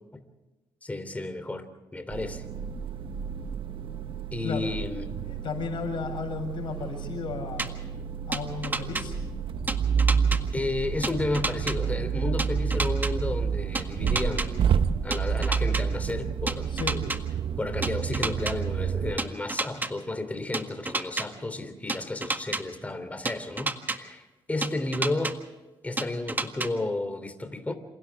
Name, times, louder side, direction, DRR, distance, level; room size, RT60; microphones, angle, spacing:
voice 1, 0.8-1.7 1.9-2.4 4.3-5.2 10.5-14.7 15.0-16.7 17.6-25.4 25.8-27.7, left 2 dB, 15° left, 8 dB, 3.3 m, -32 dB
sound 1, 2.1-19.2, right 7 dB, 70° right, 1.1 m, -29 dB
voice 2, 5.3-7.7 8.3-9.2 16.7-17.0, left 5 dB, 60° left, 3 dB, 7.7 m, -34 dB
sound 2, 7.6-7.7 8.3-9.0 9.7-10.4 11.0-11.7 12.4-13.1 13.7-14.5 15.1-15.8 16.5-17.2 17.8-18.5 19.2-19.9 20.5-21.2 21.9-22.6 23.2-24.0 24.6-25.3 26.0-26.7, right 2 dB, 20° right, 1.7 m, -29 dB
28.0 x 27.5 x 3.6 m, 1.2 s
cardioid pair, 100°, 9 cm